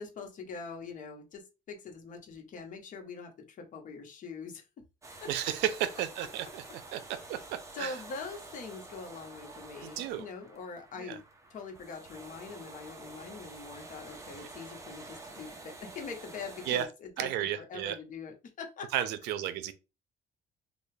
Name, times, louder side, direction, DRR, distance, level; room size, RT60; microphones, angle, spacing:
voice 1, 0.0-4.6 5.2-5.5 7.3-7.5 7.7-11.2 11.5-17.3 17.6-18.9, left 5 dB, 50° left, 0.9 m, -43 dB
sound 1, 5.0-16.9, right 2 dB, 20° right, 0.7 m, -49 dB
voice 2, 5.3-6.6 6.9-8.0 9.8-10.3 11.0-11.2 14.3-14.5 16.7-16.9 17.2-18.0 18.9-19.7, right 11 dB, 90° right, 0.5 m, -33 dB
3.3 x 2.3 x 3.2 m
cardioid pair, 110°, 17 cm